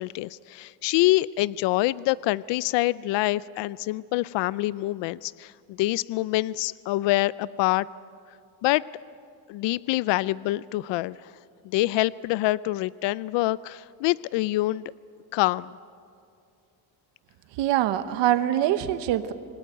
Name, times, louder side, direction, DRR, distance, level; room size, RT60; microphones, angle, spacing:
voice 1, 0.0-7.9 8.6-8.8 9.5-11.4 11.6-14.9 15.3-15.7, left 18 dB, 80° left, 20 dB, 0.5 m, -26 dB
voice 2, 17.5-19.3, right 12 dB, 90° right, 11 dB, 1.1 m, -24 dB
26.0 x 20.0 x 9.3 m, 2.4 s
cardioid pair, 155°, 42 cm